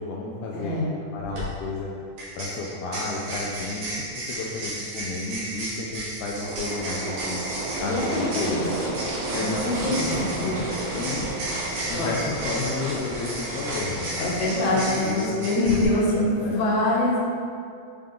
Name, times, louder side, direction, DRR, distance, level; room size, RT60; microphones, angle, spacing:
voice 1, 0.0-0.8 1.1-1.9 2.4-7.4 7.8-8.8 9.3-10.6 10.9-11.3 11.8-14.3 14.7-15.4 15.6-16.6, left 3 dB, 85° left, -3 dB, 1.7 m, -32 dB
voice 2, 0.5-1.0 7.8-8.9 9.4-10.6 11.9-12.1 14.2-17.2, left 1 dB, 60° left, -6 dB, 2.6 m, -25 dB
sound 1, 1.2-1.4 2.2-15.8, right 1 dB, 70° right, 3.2 m, -34 dB
sound 2, 6.4-14.2, right 3 dB, 85° right, 2.4 m, -34 dB
sound 3, 7.4-15.2, right 1 dB, 50° right, 1.9 m, -36 dB
7.5 x 3.6 x 3.7 m, 2.3 s
omnidirectional pair, 4.2 m